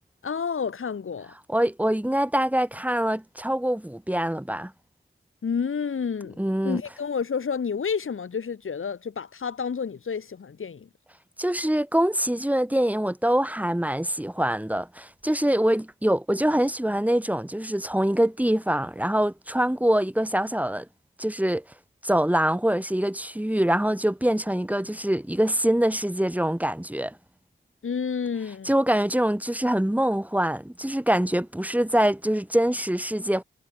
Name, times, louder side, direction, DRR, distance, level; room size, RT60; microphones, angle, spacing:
voice 1, 0.2-1.3 5.4-10.9 27.8-28.7, left 6 dB, 75° left, 6.8 m, -30 dB
voice 2, 1.5-4.7 6.4-6.8 11.4-20.9 21.2-21.6 22.0-27.1 28.6-33.4, right 1 dB, 5° right, 2.5 m, -24 dB
cardioid pair, 50°, 21 cm